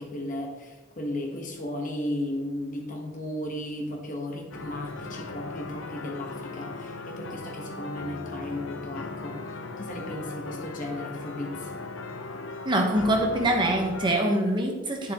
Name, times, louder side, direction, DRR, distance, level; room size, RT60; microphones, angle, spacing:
voice 1, 0.0-9.4 9.8-11.7, left 1 dB, 40° left, 1 dB, 1.4 m, -35 dB
sound 1, 4.5-14.1, left 3 dB, 80° left, 0.9 m, -38 dB
voice 2, 12.6-15.1, right 1 dB, 25° right, 1 dB, 1.1 m, -24 dB
9.5 x 7.1 x 3.0 m, 1.2 s
head